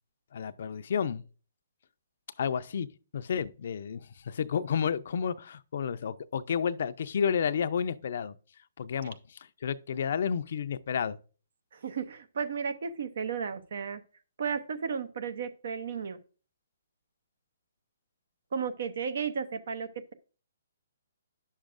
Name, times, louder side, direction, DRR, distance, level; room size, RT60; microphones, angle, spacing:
voice 1, 0.3-1.2 2.4-2.9 3.1-8.4 8.8-11.2, left 7 dB, 60° left, 0.4 m, -31 dB
voice 2, 11.7-14.0 14.4-16.2 18.5-20.1, right 6 dB, 65° right, 0.7 m, -34 dB
10.0 x 6.4 x 2.5 m
hypercardioid pair, 140°, 0 cm